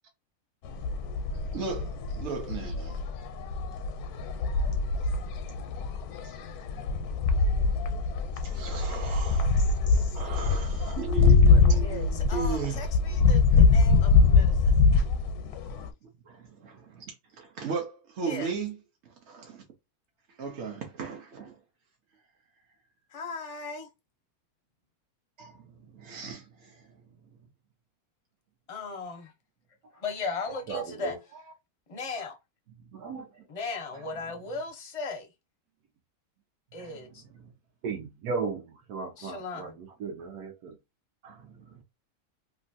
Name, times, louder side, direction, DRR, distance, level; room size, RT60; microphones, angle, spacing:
sound 1, 0.6-15.9, left 4 dB, 85° left, 1.1 m, -24 dB
voice 1, 1.5-3.0 6.2-6.4 8.4-9.7 10.1-12.8 14.9-15.0 16.0-18.8 19.0-19.6 20.3-21.6 25.4-27.0 32.8-33.2 33.9-34.0 36.8-37.1 37.3-37.5 41.2-41.8, right 5 dB, 60° right, 0.8 m, -37 dB
voice 2, 9.9-10.2 11.5-14.8 18.2-18.5 23.1-23.9 28.7-29.3 29.9-31.2 31.9-32.4 33.5-35.3 36.7-37.2 39.2-39.8, left 3 dB, 45° left, 0.4 m, -37 dB
voice 3, 30.7-31.2 32.9-33.4 37.8-40.8, right 4 dB, 85° right, 1.2 m, -36 dB
3.0 x 2.4 x 2.6 m
omnidirectional pair, 1.6 m